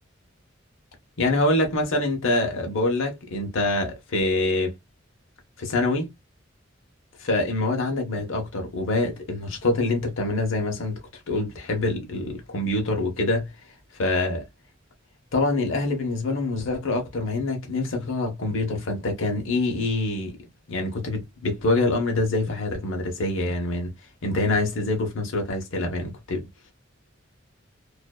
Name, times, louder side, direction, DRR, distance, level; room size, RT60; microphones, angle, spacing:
voice 1, 1.2-4.7 5.6-6.1 7.2-11.0 11.3-13.5 14.0-14.5 15.3-20.4 20.7-23.9 24.2-26.5, left 2 dB, 80° left, 0.7 m, -25 dB
2.5 x 2.2 x 2.2 m
head